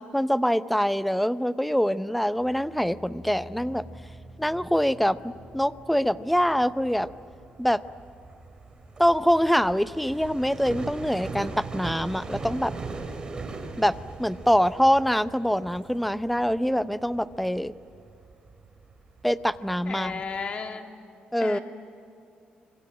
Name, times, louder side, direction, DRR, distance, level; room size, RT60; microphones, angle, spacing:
voice 1, 0.0-3.8 4.4-7.1 7.6-7.8 9.0-12.7 13.8-17.7 19.2-20.2 21.3-21.6, equal, ahead, 14 dB, 0.6 m, -24 dB
sound 1, 2.1-9.2 9.4-9.9 10.2-10.3, equal, 75° left, 7.1 m, -50 dB
sound 2, 3.9-20.4, right 3 dB, 25° right, 3.7 m, -41 dB
voice 2, 19.9-20.9 21.4-21.6, left 5 dB, 40° left, 5 dB, 2.4 m, -33 dB
26.0 x 25.5 x 9.1 m, 2.7 s
cardioid pair, 140°, 3 cm